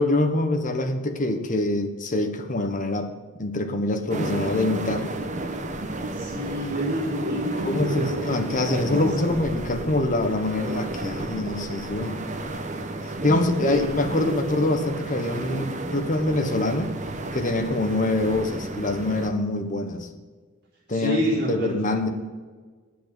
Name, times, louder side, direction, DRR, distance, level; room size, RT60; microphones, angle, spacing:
voice 1, 0.0-5.1 7.6-12.2 13.2-16.9 17.3-20.1 20.9-21.2 21.5-22.1, left 2 dB, 40° left, 6 dB, 1.3 m, -25 dB
sound 1, 4.1-19.3, right 2 dB, 35° right, 1.1 m, -32 dB
voice 2, 6.1-9.3 13.2-14.3 20.9-22.1, equal, 50° right, -4 dB, 4.1 m, -29 dB
10.0 x 8.0 x 8.0 m, 1.5 s
head